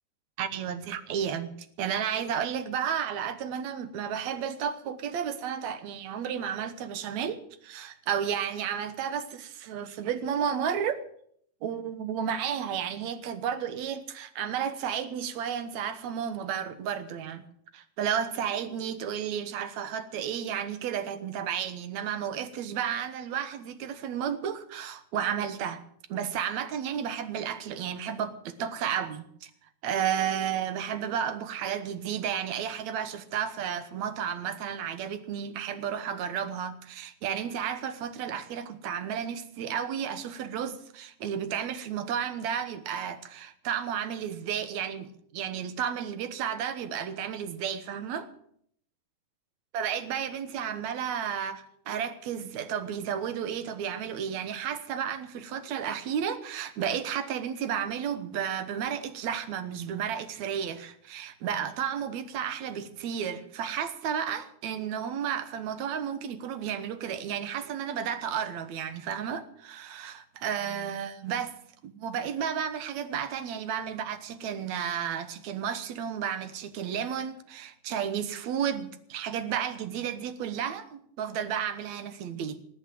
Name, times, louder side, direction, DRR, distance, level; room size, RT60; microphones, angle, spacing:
voice 1, 0.4-1.5 1.8-11.0 11.6-17.4 17.7-25.8 26.1-29.5 29.8-48.3 49.7-71.5 71.8-82.6, right 8 dB, 70° right, 2.4 m, -32 dB
20.5 x 8.1 x 7.5 m
omnidirectional pair, 3.4 m